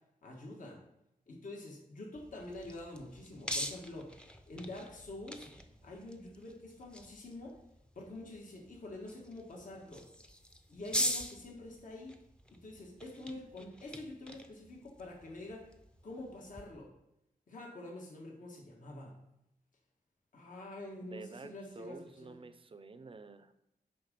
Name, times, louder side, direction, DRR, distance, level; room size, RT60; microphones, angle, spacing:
voice 1, 0.2-0.8 1.3-4.1 4.5-5.4 5.8-7.6 7.9-10.1 10.7-12.1 12.5-15.7 16.0-16.9 17.5-19.2 20.3-22.4, left 2 dB, 60° left, -1 dB, 1.6 m, -46 dB
sound 1, 2.2-16.6, equal, 5° left, 0.7 m, -43 dB
voice 2, 21.0-23.5, right 3 dB, 35° right, 11 dB, 0.6 m, -50 dB
10.5 x 3.8 x 5.2 m, 0.82 s
wide cardioid pair, 110°, 15 cm